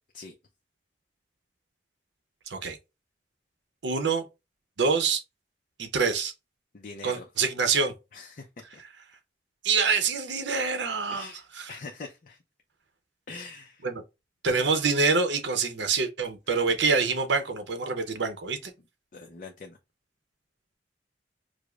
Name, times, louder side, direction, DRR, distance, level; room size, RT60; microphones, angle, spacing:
voice 1, 2.5-2.8 3.8-4.2 4.8-5.2 5.8-6.3 7.0-7.9 9.6-11.3 11.6-11.7 13.8-14.0 14.4-18.7, right 4 dB, 80° right, 0.6 m, -26 dB
voice 2, 6.7-7.4 8.1-8.8 11.1-12.4 13.3-13.9 14.5-14.7 16.7-16.8 19.1-19.8, left 4 dB, 45° left, 0.4 m, -43 dB
4.8 x 2.0 x 2.3 m
head